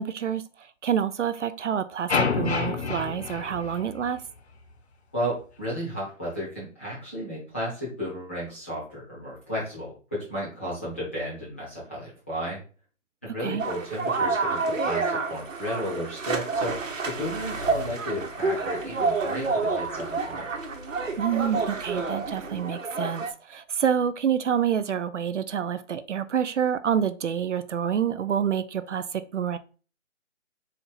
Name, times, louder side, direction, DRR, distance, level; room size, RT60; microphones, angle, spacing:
voice 1, 0.0-4.2 13.3-13.6 21.2-29.6, right 8 dB, 70° right, 12 dB, 0.5 m, -27 dB
sound 1, 2.1-4.4, left 5 dB, 60° left, 0.7 m, -28 dB
voice 2, 5.1-12.6 13.2-20.5, equal, 10° left, -8 dB, 0.9 m, -33 dB
sound 2, 13.6-23.3, right 4 dB, 85° right, 1.1 m, -29 dB
sound 3, 16.5-22.6, equal, 15° right, 1.0 m, -45 dB
4.3 x 2.8 x 3.9 m, 0.36 s
hypercardioid pair, 175°, 38 cm